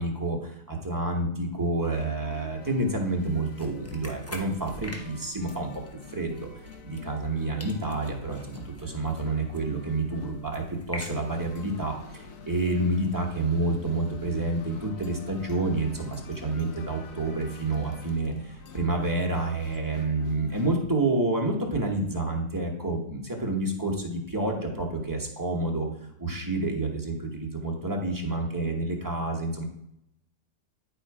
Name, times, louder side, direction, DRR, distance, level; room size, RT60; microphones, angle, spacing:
voice 1, 0.0-5.7 6.1-25.9 26.2-29.6, right 2 dB, 15° right, 0 dB, 1.1 m, -29 dB
sound 1, 1.9-20.8, left 4 dB, 60° left, 1.2 m, -47 dB
sound 2, 3.2-7.3 7.6-11.7, equal, 15° left, 0.6 m, -46 dB
10.5 x 4.3 x 4.8 m, 0.77 s
omnidirectional pair, 1.8 m